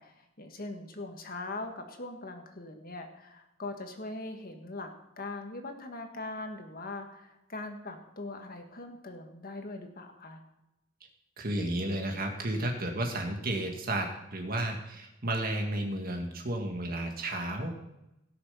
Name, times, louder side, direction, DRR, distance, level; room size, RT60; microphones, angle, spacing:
voice 1, 0.0-4.9 5.2-10.4, left 2 dB, 50° left, 5 dB, 1.7 m, -41 dB
voice 2, 11.4-17.8, right 1 dB, 50° right, 2 dB, 1.7 m, -32 dB
17.0 x 6.7 x 5.6 m, 0.89 s
head